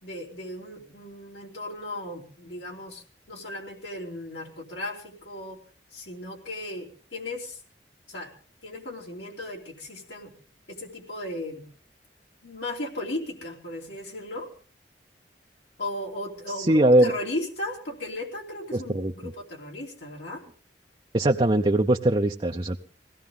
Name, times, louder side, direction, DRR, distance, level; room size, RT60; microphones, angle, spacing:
voice 1, 0.0-5.6 5.9-7.6 8.1-8.3 8.6-10.3 10.7-11.7 12.4-14.5 15.8-20.4, left 1 dB, 75° left, -1 dB, 3.2 m, -36 dB
voice 2, 16.6-17.1 18.7-19.1 21.1-22.8, right 1 dB, 30° right, 3 dB, 0.7 m, -21 dB
22.5 x 17.0 x 3.8 m, 0.39 s
head